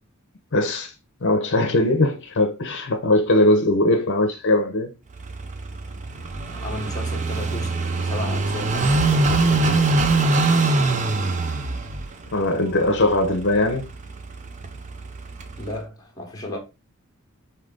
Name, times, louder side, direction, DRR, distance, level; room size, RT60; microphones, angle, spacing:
voice 1, 0.5-0.9 1.2-4.9 12.3-13.9, left 1 dB, 55° left, 0.7 m, -20 dB
Car passing by / Idling, 5.1-15.8, right 3 dB, 35° right, 0.5 m, -24 dB
voice 2, 6.5-10.0 15.6-16.6, left 1 dB, 15° left, 1.2 m, -34 dB
4.9 x 2.7 x 3.7 m
head